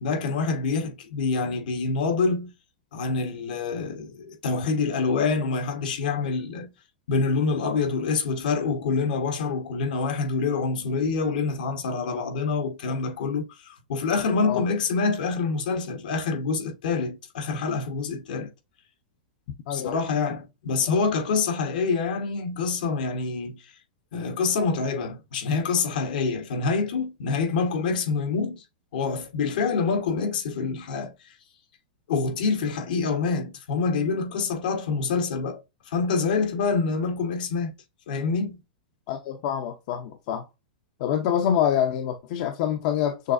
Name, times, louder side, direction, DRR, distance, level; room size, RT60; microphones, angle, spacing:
voice 1, 0.0-2.5 2.9-6.7 7.1-18.5 19.7-23.6 24.1-28.6 28.9-31.1 32.1-35.6 35.9-37.7 38.1-38.6, left 4 dB, 75° left, 1.2 m, -26 dB
voice 2, 19.7-20.0 39.1-40.4 41.0-43.3, left 9 dB, 50° left, 0.6 m, -26 dB
6.4 x 2.5 x 2.5 m
supercardioid pair, 145°, 5 cm